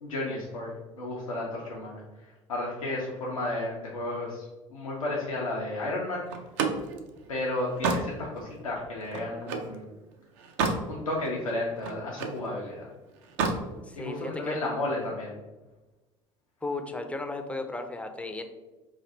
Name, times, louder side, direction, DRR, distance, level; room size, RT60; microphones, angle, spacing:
voice 1, 0.0-6.3 7.3-9.9 10.9-12.9 13.9-15.3, left 2 dB, 80° left, -3 dB, 0.6 m, -33 dB
Slam, 6.3-9.8 10.2-10.9 11.3-12.4 13.2-13.7, right 4 dB, 65° right, 0.5 m, -30 dB
voice 2, 13.8-14.6 16.6-18.4, left 2 dB, 5° left, 6 dB, 0.4 m, -35 dB
3.3 x 2.6 x 3.7 m, 1.1 s
figure-of-eight pair, 60°, 17 cm